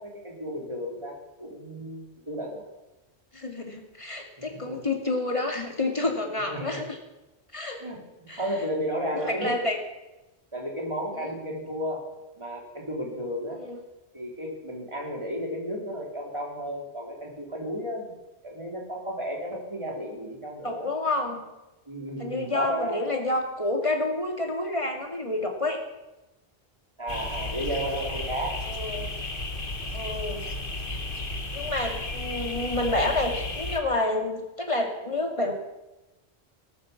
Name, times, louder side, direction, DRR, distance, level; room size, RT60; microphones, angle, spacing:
voice 1, 0.0-2.7 4.4-4.8 6.5-6.9 7.8-9.6 10.5-12.1 12.4-13.6 14.1-18.1 18.4-20.9 21.9-23.1 27.0-28.6, equal, 25° right, -2 dB, 4.1 m, -33 dB
voice 2, 3.3-7.0 7.5-7.8 8.3-8.4 9.1-9.8 11.1-11.3 13.5-13.8 20.6-21.4 22.2-25.8 28.6-29.1 29.9-30.4 31.5-35.5, left 2 dB, 30° left, 2 dB, 2.5 m, -29 dB
sound 1, 27.1-33.8, left 2 dB, 50° left, 1.9 m, -33 dB
19.0 x 9.8 x 7.3 m, 1.0 s
omnidirectional pair, 1.1 m